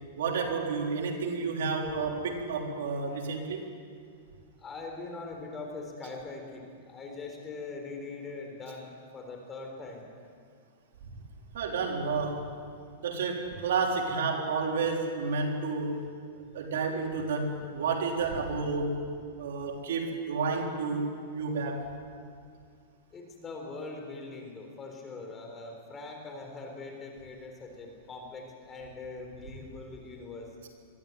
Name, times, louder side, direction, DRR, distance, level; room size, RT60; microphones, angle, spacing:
voice 1, 0.2-3.6 11.5-12.5 13.0-16.0 16.5-19.0 19.4-21.9, right 4 dB, 80° right, 1 dB, 3.7 m, -30 dB
voice 2, 4.6-10.1 23.1-30.5, left 3 dB, 20° left, 2 dB, 4.0 m, -42 dB
22.0 x 14.5 x 9.3 m, 2.2 s
supercardioid pair, 150°, 0 cm